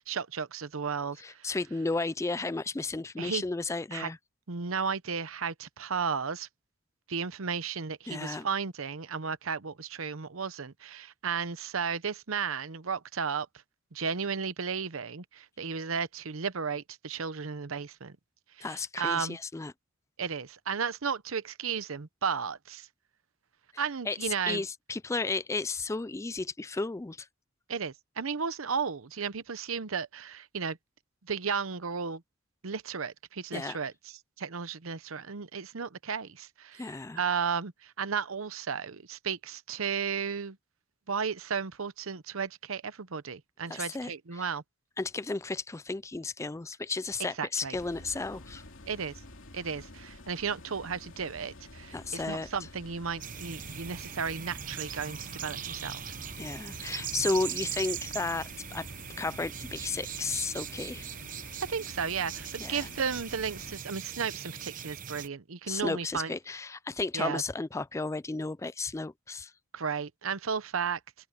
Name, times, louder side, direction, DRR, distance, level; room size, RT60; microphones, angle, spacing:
voice 1, 0.0-1.5 3.2-3.4 3.9-4.1 4.5-6.5 7.1-13.5 13.9-18.2 18.6-18.7 19.0-19.4 20.2-22.9 23.8-24.6 27.7-30.8 31.3-32.2 32.6-33.9 34.4-36.9 37.2-40.6 41.1-44.6 47.4-47.8 48.9-49.1 49.5-56.0 61.7-66.3 67.1-67.4 69.7-71.0, right 6 dB, 85° right, 0.8 m, -34 dB
voice 2, 1.2-4.2 8.1-8.5 18.6-19.7 24.1-27.3 33.5-33.8 36.8-37.2 43.7-44.5 45.0-48.6 51.9-52.5 56.4-58.9 59.2-61.1 62.6-62.9 65.7-69.5, left 3 dB, 15° left, 0.3 m, -33 dB
sound 1, 47.7-63.8, left 1 dB, 70° left, 2.8 m, -49 dB
sound 2, 53.2-65.3, right 8 dB, 40° right, 0.9 m, -40 dB
open air
head